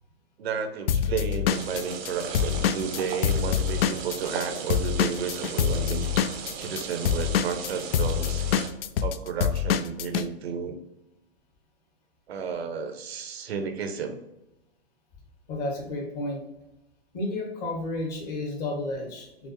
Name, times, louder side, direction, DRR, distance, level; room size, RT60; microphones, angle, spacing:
voice 1, 0.4-6.1 6.5-8.4 9.0-10.8 12.3-14.2, right 6 dB, 80° right, 7 dB, 0.8 m, -32 dB
Drum kit / Drum, 0.9-4.4 4.7-10.2, left 8 dB, 70° left, 0.5 m, -25 dB
sound 1, 1.5-8.7, right 6 dB, 25° right, 0.6 m, -37 dB
voice 2, 15.5-16.4 17.1-19.5, left 2 dB, 40° left, 1 dB, 1.5 m, -32 dB
5.8 x 2.0 x 3.0 m, 0.90 s
hypercardioid pair, 135°, 31 cm